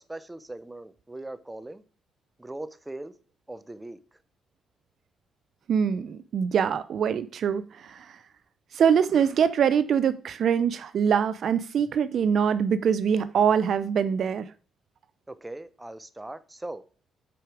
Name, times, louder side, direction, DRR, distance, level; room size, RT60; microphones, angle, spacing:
voice 1, 0.0-1.8 2.4-3.1 3.5-4.2 15.3-16.8, right 2 dB, 10° right, 0.7 m, -40 dB
voice 2, 5.7-8.1 8.7-14.5, right 7 dB, 60° right, 0.4 m, -24 dB
7.8 x 4.8 x 4.9 m
cardioid pair, 90°, 0 cm